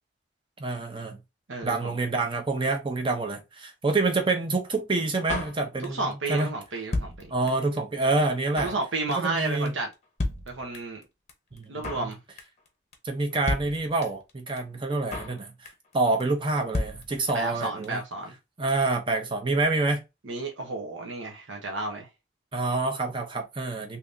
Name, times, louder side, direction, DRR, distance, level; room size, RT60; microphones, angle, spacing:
voice 1, 0.6-1.2 1.6-6.5 7.3-8.7 9.1-9.7 11.5-11.7 12.0-12.1 13.0-15.5 15.9-18.0 18.6-20.0 22.5-24.0, right 3 dB, 25° right, 0.6 m, -27 dB
voice 2, 1.5-2.0 5.8-7.3 8.6-9.9 10.5-11.0 11.7-12.2 17.3-18.4 20.2-22.1, right 3 dB, 90° right, 0.8 m, -32 dB
Drum kit, 5.3-6.1 6.4-6.5 6.7-7.8 8.0-8.1 8.3-8.8 9.1-9.4 9.7-9.8 9.9-10.0 10.2-11.0 11.3-11.4 11.6-12.1 12.4-12.7 12.9-13.0 13.2-13.3 13.5-14.3 14.6-14.7 14.8-15.4 15.7-15.9 16.2-16.3 16.5-16.6 16.7-17.6 17.8-17.9 18.1-18.2, left 2 dB, 35° left, 0.7 m, -32 dB
3.4 x 2.8 x 2.5 m
head